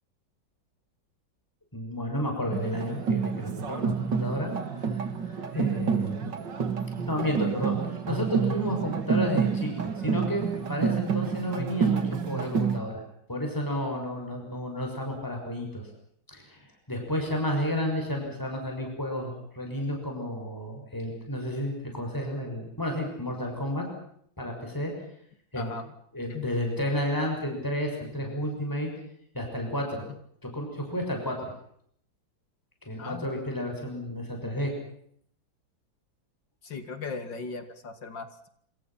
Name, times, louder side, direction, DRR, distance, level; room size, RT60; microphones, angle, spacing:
voice 1, 1.7-4.5 4.9-6.2 7.1-13.0 13.3-15.9 16.3-23.9 24.4-24.9 25.5-25.7 26.1-28.9 29.3-30.0 30.4-31.5 32.8-34.7, equal, 10° left, 2 dB, 6.4 m, -31 dB
sound 1, 2.5-12.8, right 6 dB, 65° right, 2.7 m, -29 dB
voice 2, 25.6-25.9 26.3-26.5 33.0-33.3 36.6-38.5, left 4 dB, 65° left, 9 dB, 3.2 m, -38 dB
27.0 x 27.0 x 5.9 m, 0.67 s
omnidirectional pair, 2.1 m